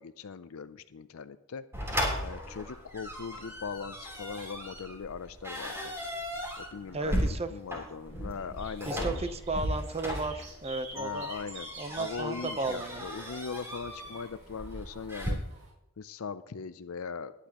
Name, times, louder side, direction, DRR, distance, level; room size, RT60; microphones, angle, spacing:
voice 1, 0.0-1.6 2.2-5.9 6.6-7.2 7.5-9.2 10.9-11.7 12.0-15.4 16.0-17.5, left 5 dB, 70° left, 12 dB, 0.5 m, -40 dB
sound 1, 1.7-15.3, equal, 10° right, 3.7 m, -36 dB
sound 2, 6.5-15.7, right 2 dB, 60° right, 5.7 m, -50 dB
voice 2, 6.9-7.5 8.9-11.3 11.8-13.0, right 3 dB, 30° right, 10 dB, 0.8 m, -34 dB
20.0 x 9.9 x 3.0 m, 0.92 s
head